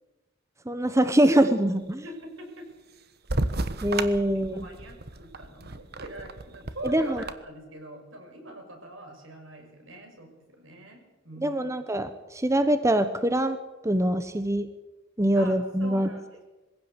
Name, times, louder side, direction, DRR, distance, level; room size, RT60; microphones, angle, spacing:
voice 1, 0.7-2.0 3.8-4.7 6.8-7.2 11.4-13.6 13.8-14.7 15.2-16.1, right 1 dB, 15° right, 10 dB, 1.0 m, -24 dB
voice 2, 2.0-2.7 4.5-10.3 10.6-11.7 15.3-16.4, right 1 dB, 80° right, 4 dB, 6.1 m, -43 dB
sound 1, 3.3-7.3, right 2 dB, 55° right, 1.3 m, -33 dB
22.5 x 16.0 x 8.2 m, 1.1 s
head